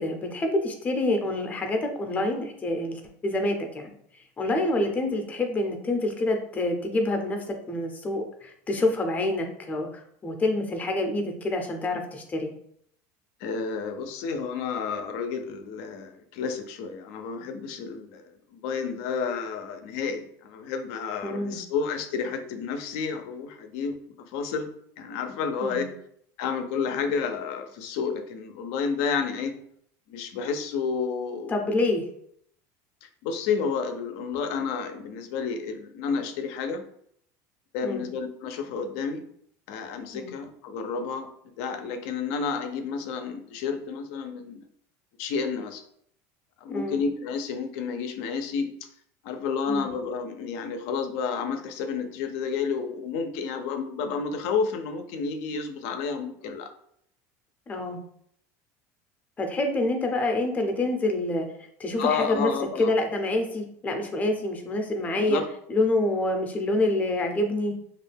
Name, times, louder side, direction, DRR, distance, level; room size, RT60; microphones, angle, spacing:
voice 1, 0.0-3.9 4.4-12.5 21.2-21.6 25.6-25.9 31.5-32.1 37.8-38.0 40.1-40.3 46.7-47.0 49.7-49.9 57.7-58.0 59.4-61.5 61.8-62.5 62.8-65.4 65.7-67.7, left 2 dB, 20° left, 4 dB, 0.5 m, -27 dB
voice 2, 13.4-23.9 24.3-24.7 25.0-25.9 26.4-29.5 30.1-31.6 33.0-36.8 37.7-39.2 39.7-41.3 41.6-44.6 45.2-45.8 46.6-48.7 49.2-56.7 62.0-62.9 65.2-65.4, left 5 dB, 70° left, 7 dB, 0.4 m, -30 dB
2.4 x 2.1 x 3.3 m, 0.68 s
supercardioid pair, 135°, 8 cm